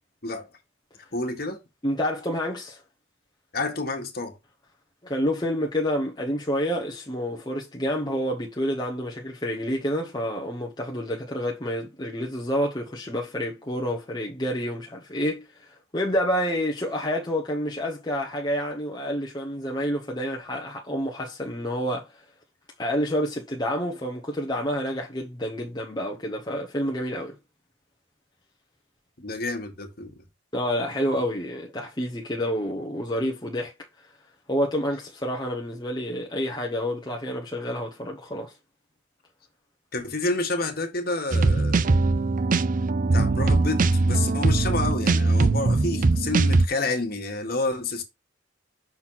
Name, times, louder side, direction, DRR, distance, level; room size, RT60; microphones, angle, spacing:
voice 1, 1.1-1.6 3.5-4.4 29.2-30.1 39.9-42.0 43.1-48.0, left 2 dB, 50° left, 1.8 m, -29 dB
voice 2, 1.8-2.8 5.0-22.1 22.8-27.4 30.5-33.7 34.5-38.5, equal, 20° left, 1.0 m, -28 dB
sound 1, 41.3-46.7, right 3 dB, 45° right, 0.4 m, -21 dB
6.0 x 4.3 x 5.6 m
head